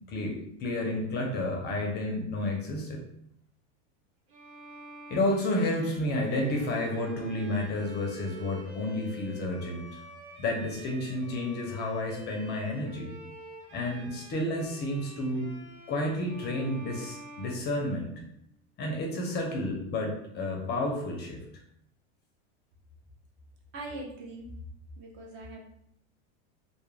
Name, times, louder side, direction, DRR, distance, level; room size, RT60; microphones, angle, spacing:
voice 1, 0.1-3.0 5.1-10.0 10.4-13.1 13.7-15.5 15.9-18.2 18.8-21.4, left 1 dB, 30° left, 1 dB, 0.5 m, -31 dB
Bowed string instrument, 4.3-18.4, right 2 dB, 70° right, 0.9 m, -48 dB
voice 2, 23.7-24.5 25.0-25.6, right 2 dB, 35° right, 0 dB, 0.5 m, -41 dB
2.2 x 2.1 x 3.1 m, 0.72 s
supercardioid pair, 130°, 34 cm